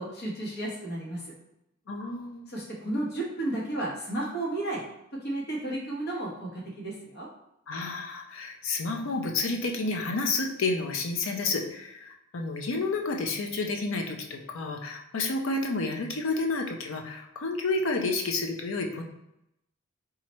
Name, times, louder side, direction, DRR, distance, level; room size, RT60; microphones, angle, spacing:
voice 1, 0.0-1.3 2.5-4.8 5.2-7.3, right 1 dB, 50° left, -3 dB, 1.1 m, -33 dB
voice 2, 1.9-2.5 7.7-19.0, left 3 dB, 65° left, 3 dB, 0.5 m, -30 dB
3.0 x 2.4 x 4.1 m, 0.83 s
head